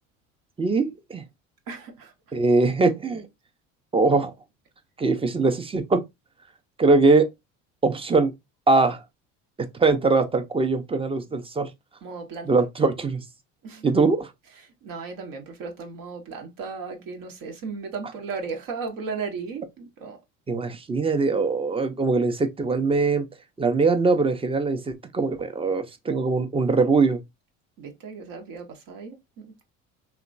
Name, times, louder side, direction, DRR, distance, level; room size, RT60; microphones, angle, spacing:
voice 1, 0.6-1.2 2.3-3.3 3.9-4.3 5.0-6.0 6.8-7.3 7.8-8.3 8.7-9.0 9.8-11.7 12.4-13.2 13.8-14.3 20.5-23.3 23.6-27.2, right 3 dB, 15° right, 0.5 m, -22 dB
voice 2, 1.7-2.1 12.0-12.5 13.6-13.9 14.8-20.2 27.8-29.5, right 5 dB, 60° right, 0.9 m, -35 dB
2.8 x 2.2 x 2.5 m
hypercardioid pair, 75°, 38 cm